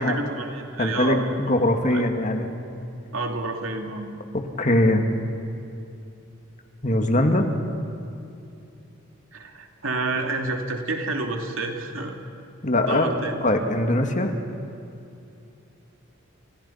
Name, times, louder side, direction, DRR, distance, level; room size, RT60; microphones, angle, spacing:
voice 1, 0.0-1.2 1.9-2.1 3.1-4.1 9.3-12.2 12.8-13.4, right 3 dB, 75° right, 3 dB, 2.8 m, -29 dB
voice 2, 0.8-2.5 4.6-5.1 6.8-7.4 12.6-13.1 13.4-14.3, left 1 dB, 35° left, 5 dB, 2.1 m, -21 dB
30.0 x 29.5 x 5.8 m, 2.7 s
head